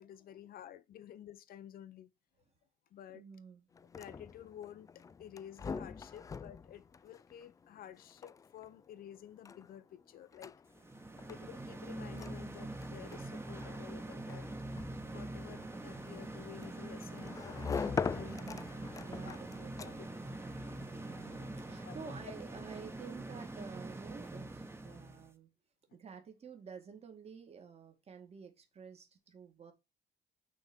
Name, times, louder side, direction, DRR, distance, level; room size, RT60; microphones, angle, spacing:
voice 1, 0.0-2.1 2.9-3.2 4.0-10.5 11.3-14.5 15.0-18.3 19.2-19.4 19.8-19.9 21.8-22.1, left 10 dB, 60° left, 1.0 m, -52 dB
voice 2, 3.1-3.7 10.8-10.9 18.1-20.0 20.6-25.5 25.9-29.7, right 6 dB, 40° right, 2.0 m, -51 dB
sound 1, 3.7-20.3, left 5 dB, 20° left, 0.3 m, -44 dB
sound 2, 10.7-25.3, right 2 dB, 15° right, 1.3 m, -44 dB
sound 3, 15.7-23.1, left 5 dB, 40° left, 1.5 m, -60 dB
6.3 x 4.2 x 6.1 m
cardioid pair, 110°, 17 cm